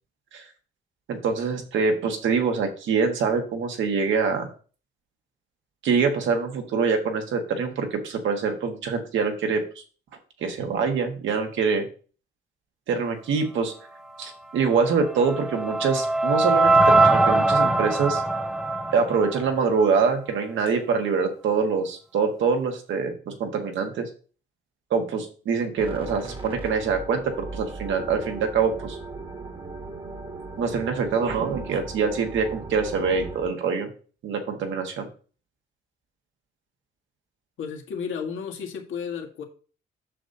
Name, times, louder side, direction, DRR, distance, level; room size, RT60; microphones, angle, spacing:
voice 1, 1.1-4.5 5.8-9.6 10.4-11.9 12.9-13.7 14.2-18.2 18.9-24.1 24.9-29.0 30.6-33.9 34.2-35.1, right 5 dB, 75° right, 4 dB, 1.6 m, -25 dB
sound 1, 14.8-20.0, right 2 dB, 5° right, 0.4 m, -21 dB
sound 2, 25.8-33.5, right 3 dB, 25° right, 1.3 m, -37 dB
voice 2, 37.6-39.4, left 6 dB, 80° left, 3 dB, 1.6 m, -33 dB
7.5 x 6.6 x 2.8 m, 0.38 s
cardioid pair, 90°, 20 cm